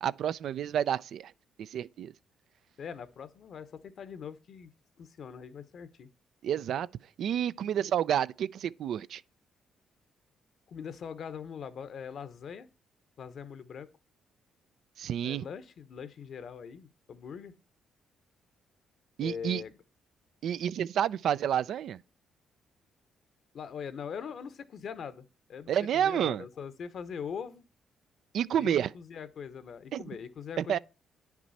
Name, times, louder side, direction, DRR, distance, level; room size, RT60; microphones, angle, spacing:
voice 1, 0.0-1.3 1.6-2.1 6.4-6.9 7.2-9.2 15.0-15.4 19.2-19.6 20.4-22.0 25.7-26.4 28.3-28.9 29.9-30.0 30.6-30.8, right 9 dB, 70° right, 0.4 m, -29 dB
voice 2, 2.8-4.7 5.0-6.1 10.7-12.7 13.2-13.9 15.2-17.6 19.2-19.8 23.5-27.7 28.6-30.8, left 7 dB, 60° left, 0.9 m, -42 dB
9.5 x 6.0 x 4.1 m
cardioid pair, 90°, 0 cm